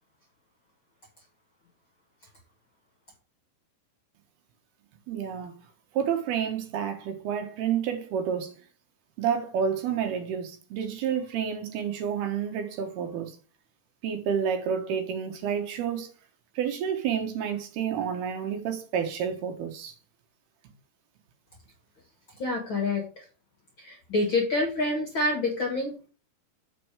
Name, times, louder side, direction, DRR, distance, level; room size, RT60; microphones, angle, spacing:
voice 1, 5.1-5.5 5.9-8.5 9.2-13.4 14.0-16.1 16.6-19.9, right 8 dB, 70° right, 3.1 m, -29 dB
voice 2, 22.4-23.2 23.8-26.1, left 2 dB, 45° left, 1.8 m, -27 dB
7.7 x 6.8 x 5.0 m
omnidirectional pair, 4.9 m